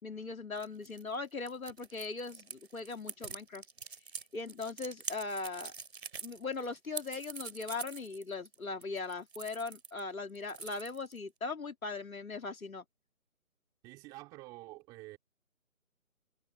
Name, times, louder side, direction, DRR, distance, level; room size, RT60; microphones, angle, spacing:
voice 1, 0.0-3.6 4.3-5.7 6.2-12.8, left 3 dB, 85° left, 2.6 m, -39 dB
sound 1, 0.6-10.0 10.3-11.3, right 5 dB, 50° right, 2.8 m, -45 dB
voice 2, 13.8-15.2, right 20 dB, 10° right, 4.1 m, -48 dB
figure-of-eight pair, 170°, 41 cm